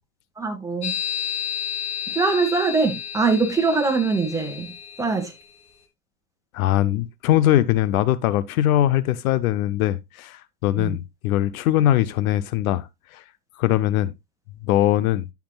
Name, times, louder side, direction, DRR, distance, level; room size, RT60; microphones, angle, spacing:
voice 1, 0.4-0.9 2.1-4.7 5.0-5.3 10.8-11.0, right 4 dB, 5° right, 1.7 m, -22 dB
sound 1, 0.8-5.5, left 9 dB, 90° left, 2.4 m, -32 dB
voice 2, 6.5-13.2 13.6-14.1 14.6-15.2, left 13 dB, 75° left, 0.7 m, -21 dB
13.0 x 5.9 x 2.3 m
supercardioid pair, 125°, 43 cm